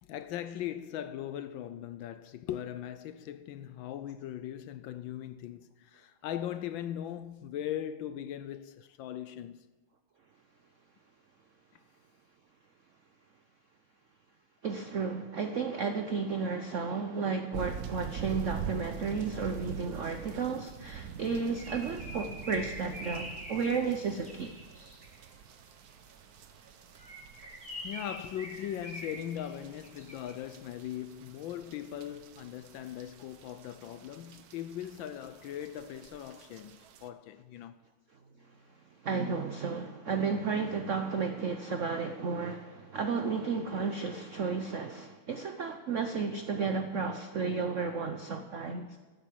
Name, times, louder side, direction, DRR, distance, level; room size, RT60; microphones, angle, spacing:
voice 1, 0.0-9.7 25.3-25.4 27.8-37.8, left 11 dB, 75° left, 1.2 m, -39 dB
voice 2, 14.6-24.5 39.0-49.0, right 5 dB, 80° right, 0.6 m, -33 dB
sound 1, 17.5-37.1, right 8 dB, 60° right, 1.0 m, -45 dB
Bird, 21.2-25.3 26.9-30.4, equal, 5° left, 2.2 m, -45 dB
15.0 x 8.3 x 7.7 m
omnidirectional pair, 2.4 m